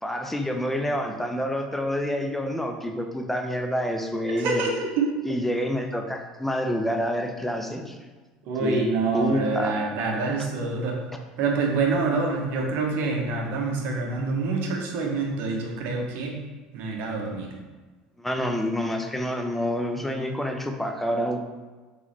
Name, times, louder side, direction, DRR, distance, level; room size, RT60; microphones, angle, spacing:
voice 1, 0.0-4.7 5.2-8.0 8.6-8.9 9.1-9.7 18.2-21.4, equal, 5° left, 4 dB, 0.5 m, -28 dB
voice 2, 4.3-5.1 8.5-11.0 11.4-16.4 16.7-17.5, right 4 dB, 55° right, 1 dB, 0.8 m, -26 dB
3.8 x 3.0 x 2.9 m, 1.3 s
hypercardioid pair, 75°, 4 cm